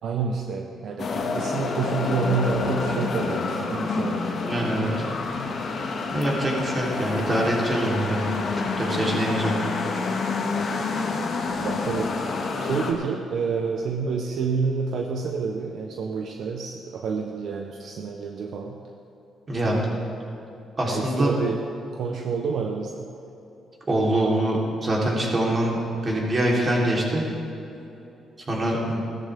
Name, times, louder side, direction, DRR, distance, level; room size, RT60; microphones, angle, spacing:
voice 1, 0.0-4.3 11.6-12.1 12.6-18.8 20.8-21.6 21.9-22.9, right 5 dB, 70° right, 2 dB, 1.0 m, -28 dB
sound 1, 1.0-12.9, left 4 dB, 55° left, 1.8 m, -28 dB
voice 2, 4.4-4.9 6.1-8.2 8.6-9.5 19.5-19.8 20.8-21.3 23.9-25.8 26.0-27.2 28.5-29.0, right 1 dB, 35° right, -3 dB, 3.5 m, -24 dB
16.5 x 13.0 x 3.6 m, 3.0 s
cardioid pair, 90°, 0 cm